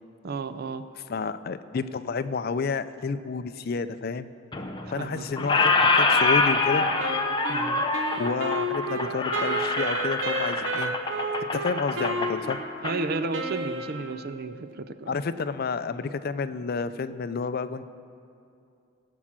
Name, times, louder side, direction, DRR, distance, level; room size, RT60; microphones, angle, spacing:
voice 1, 0.2-0.8 5.0-5.5 7.5-7.8 12.8-15.2, right 3 dB, 55° right, 11 dB, 0.5 m, -33 dB
voice 2, 1.1-4.3 4.9-6.9 8.2-10.9 11.5-12.6 15.1-17.8, left 4 dB, 55° left, 11 dB, 0.4 m, -30 dB
Squeak, 4.5-5.1 5.4-13.0, left 3 dB, 25° left, 0.8 m, -25 dB
Wind instrument woodwind instrument, 7.0-14.5, right 2 dB, 75° right, 0.9 m, -32 dB
17.0 x 6.1 x 7.4 m, 2.5 s
head